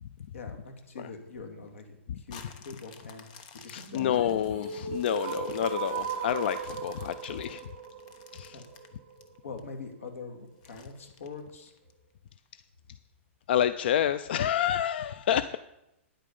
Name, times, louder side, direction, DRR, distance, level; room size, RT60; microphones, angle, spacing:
voice 1, 0.3-3.3 3.6-4.1 8.5-8.6 9.4-11.7, left 4 dB, 85° left, 5 dB, 2.3 m, -43 dB
sound 1, 2.3-9.6 10.1-10.2 10.6-11.9 12.5-12.6, left 6 dB, 35° left, 0.9 m, -51 dB
voice 2, 3.7-7.6 8.3-8.6 13.5-15.6, left 10 dB, 50° left, 13 dB, 0.4 m, -28 dB
sound 2, 3.9-9.9, right 7 dB, 25° right, 2.2 m, -38 dB
10.0 x 8.5 x 5.4 m, 0.87 s
hypercardioid pair, 170°, 7 cm